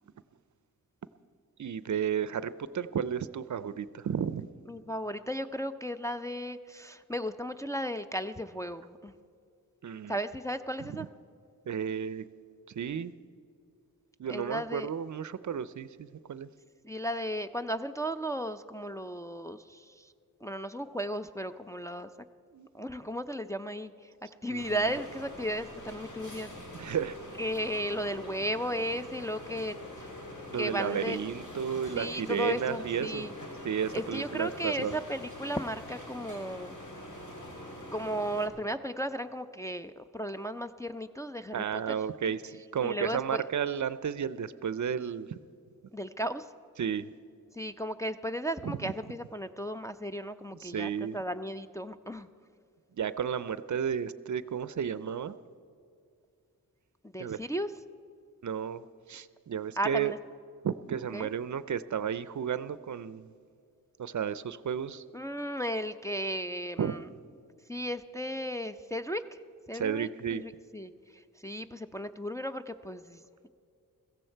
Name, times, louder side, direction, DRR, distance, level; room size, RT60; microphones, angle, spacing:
voice 1, 1.6-4.5 9.8-10.1 10.8-11.1 11.7-12.3 12.7-13.1 14.2-16.5 22.5-22.7 24.5-24.9 26.7-27.2 30.5-33.3 33.6-35.0 41.5-45.4 46.8-47.1 48.6-48.9 50.6-51.2 52.9-55.4 57.2-57.4 58.4-60.1 60.6-63.3 64.0-65.0 66.8-66.9 69.7-70.4, right 8 dB, 55° right, 15 dB, 0.5 m, -33 dB
voice 2, 4.7-9.1 10.1-11.1 14.3-14.9 16.8-20.1 20.4-22.1 22.7-24.1 24.4-26.5 26.8-26.9 27.4-30.1 30.5-31.2 31.9-33.3 33.9-36.8 37.9-42.0 42.2-42.4 42.8-43.4 45.9-46.5 47.5-52.3 57.0-57.7 59.8-60.2 61.1-61.3 65.1-67.1 67.7-69.4 69.7-73.5, equal, 10° left, 7 dB, 0.4 m, -35 dB
sound 1, 24.6-38.5, left 1 dB, 55° left, 2.7 m, -44 dB
16.0 x 15.0 x 4.5 m, 2.4 s
wide cardioid pair, 80°, 35 cm